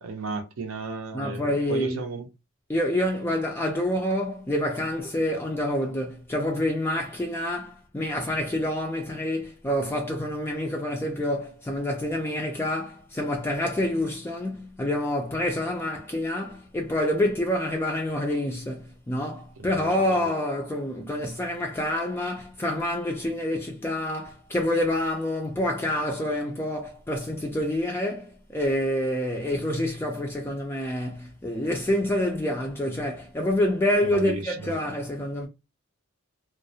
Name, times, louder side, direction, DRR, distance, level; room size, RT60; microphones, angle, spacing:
voice 1, 0.0-2.3 19.7-20.0 34.1-34.7, right 3 dB, 75° right, 0.5 m, -34 dB
voice 2, 1.1-2.0 2.7-35.5, left 1 dB, 10° left, 0.3 m, -27 dB
2.3 x 2.0 x 2.6 m
head